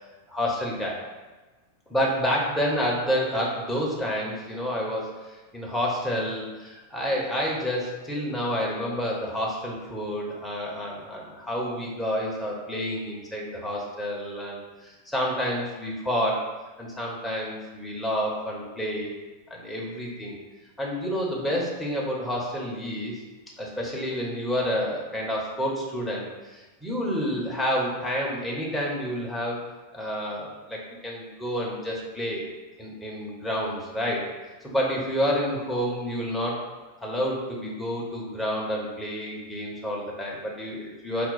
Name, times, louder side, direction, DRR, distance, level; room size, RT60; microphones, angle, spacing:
voice 1, 0.3-1.0 1.9-16.5 16.8-19.1 19.5-20.4 20.8-23.2 23.6-29.6 29.9-32.4 32.8-34.2 34.6-36.6 37.0-41.3, equal, 5° left, -4 dB, 1.0 m, -29 dB
4.7 x 2.2 x 4.1 m, 1.2 s
figure-of-eight pair, 90°, 0 cm